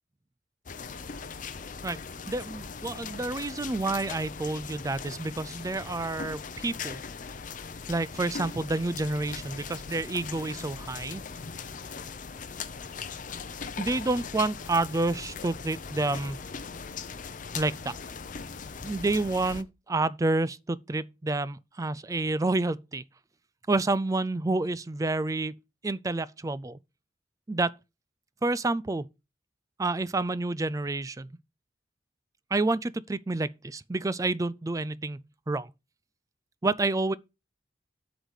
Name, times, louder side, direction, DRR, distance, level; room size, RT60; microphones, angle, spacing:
sound 1, 0.7-19.6, left 5 dB, 45° left, 0.7 m, -40 dB
voice 1, 2.3-7.0 7.9-11.2 13.8-16.4 17.6-17.9 18.8-23.0 23.7-25.5 25.8-26.8 27.5-27.7 28.4-29.0 29.8-31.3 32.5-35.7 36.6-37.1, right 2 dB, 20° right, 0.4 m, -29 dB
8.0 x 4.1 x 6.4 m
head